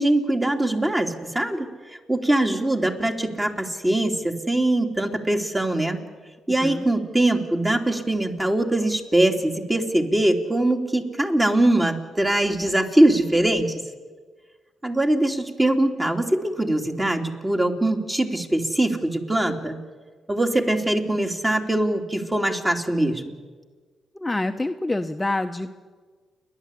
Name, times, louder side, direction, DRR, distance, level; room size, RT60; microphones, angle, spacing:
voice 1, 0.0-1.7 2.1-6.0 6.5-13.8 14.8-19.8 20.3-23.3, right 1 dB, 20° right, 3 dB, 3.0 m, -22 dB
voice 2, 24.1-25.7, left 2 dB, 15° left, 6 dB, 1.0 m, -26 dB
29.5 x 11.5 x 8.4 m, 1.5 s
supercardioid pair, 50°, 0 cm